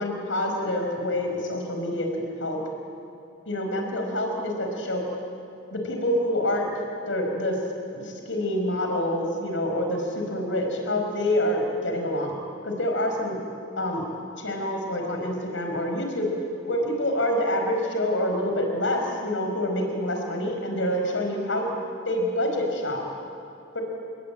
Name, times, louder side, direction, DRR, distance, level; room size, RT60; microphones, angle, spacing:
voice 1, 0.0-2.1 2.4-2.6 3.5-5.0 5.7-6.7 7.1-7.6 7.9-12.3 12.6-13.4 13.8-14.0 14.4-16.3 16.7-21.7 22.1-23.0 23.7-23.8, left 1 dB, 80° left, 2 dB, 5.3 m, -26 dB
29.5 x 20.5 x 9.0 m, 2.9 s
head